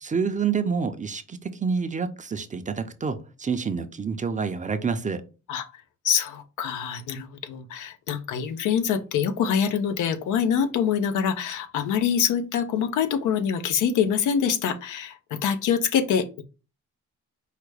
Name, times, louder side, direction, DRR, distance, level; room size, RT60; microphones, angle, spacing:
voice 1, 0.0-5.2, right 5 dB, 25° right, 0.5 m, -28 dB
voice 2, 6.0-16.4, left 7 dB, 80° left, 0.7 m, -25 dB
4.9 x 2.2 x 4.8 m
cardioid pair, 90°, 30 cm